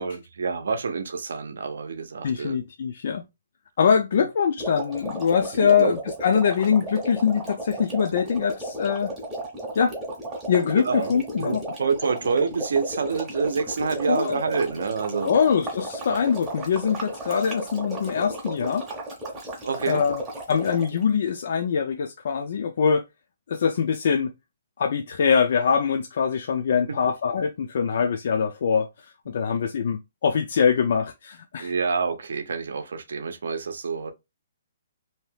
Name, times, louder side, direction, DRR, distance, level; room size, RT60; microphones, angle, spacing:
voice 1, 0.0-2.6 4.2-4.3 5.6-6.0 10.9-15.4 19.6-20.0 31.6-34.1, right 5 dB, 70° right, 0.6 m, -27 dB
voice 2, 2.2-3.3 3.8-9.1 9.8-10.0 10.5-11.6 14.1-14.4 15.2-18.8 19.9-20.2 20.5-23.1 23.5-24.3 24.8-31.7, left 6 dB, 45° left, 0.3 m, -23 dB
sound 1, 4.6-21.0, right 1 dB, 10° right, 0.6 m, -34 dB
2.7 x 2.2 x 3.2 m
hypercardioid pair, 180°, 0 cm